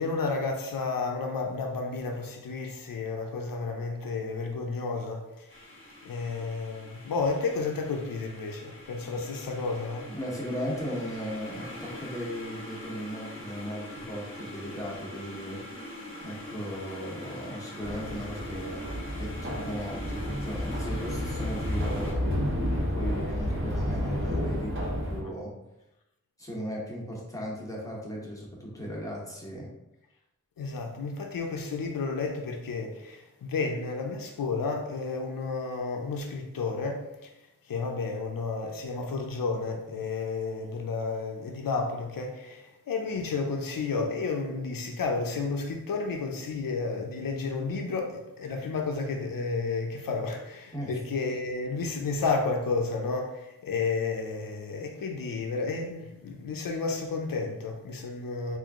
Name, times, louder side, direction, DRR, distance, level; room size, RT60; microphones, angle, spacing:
voice 1, 0.0-5.7 6.0-10.1 30.6-37.3 37.6-58.6, left 4 dB, 90° left, 0.5 m, -32 dB
sound 1, 5.5-22.1, left 1 dB, 40° left, 1.3 m, -43 dB
voice 2, 10.1-15.6 16.2-18.8 19.1-22.2 22.7-25.5 26.4-29.7 50.7-50.9, equal, 10° left, 1.2 m, -37 dB
sound 2, 17.8-25.2, equal, 40° right, 1.2 m, -31 dB
3.6 x 2.6 x 3.6 m
wide cardioid pair, 55°, 33 cm